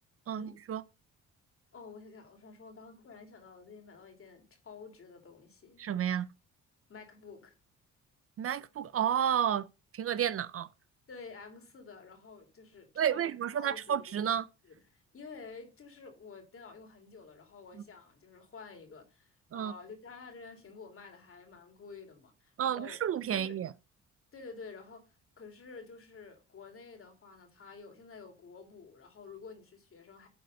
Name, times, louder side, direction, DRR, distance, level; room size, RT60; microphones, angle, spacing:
voice 1, 0.3-0.8 5.8-6.3 8.4-9.7 9.9-10.7 13.0-14.5 19.5-19.7 22.6-23.7, right 9 dB, 50° right, 0.5 m, -31 dB
voice 2, 1.7-5.9 6.9-7.6 11.1-14.2 14.6-23.0 23.3-23.5 24.3-30.3, left 4 dB, 45° left, 2.8 m, -50 dB
10.5 x 4.1 x 5.2 m
cardioid pair, 90°, 30 cm